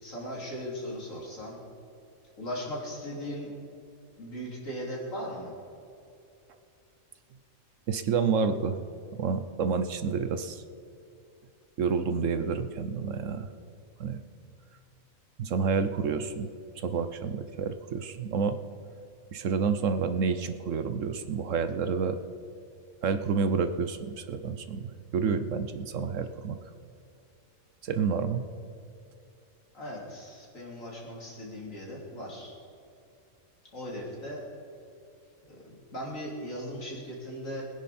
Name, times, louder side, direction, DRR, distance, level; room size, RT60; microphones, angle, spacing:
voice 1, 0.0-1.6 2.4-3.5 4.2-5.5 29.7-32.5 33.7-34.4 35.5-37.6, equal, 65° left, -3 dB, 3.7 m, -38 dB
voice 2, 7.9-8.8 9.1-10.6 11.8-13.5 14.0-14.2 15.4-16.5 16.8-18.6 19.3-22.2 23.0-26.6 27.8-28.4, right 5 dB, 65° right, 9 dB, 1.1 m, -29 dB
21.5 x 10.0 x 4.3 m, 2.6 s
omnidirectional pair, 1.5 m